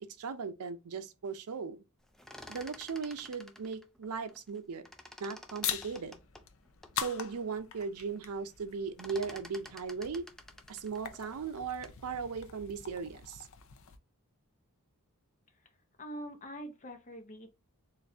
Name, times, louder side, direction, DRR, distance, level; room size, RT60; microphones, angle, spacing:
voice 1, 0.2-1.8 2.5-4.9 5.2-6.2 7.0-10.3 10.7-13.5, right 5 dB, 80° right, 0.5 m, -38 dB
sound 1, 2.0-4.6 4.8-7.0 7.5-7.6 7.8-8.3 8.5-12.1, left 1 dB, ahead, 0.3 m, -51 dB
sound 2, 5.6-14.0, left 9 dB, 65° left, 0.5 m, -43 dB
voice 2, 15.5-17.5, equal, 35° left, 0.8 m, -45 dB
4.0 x 2.5 x 3.4 m
head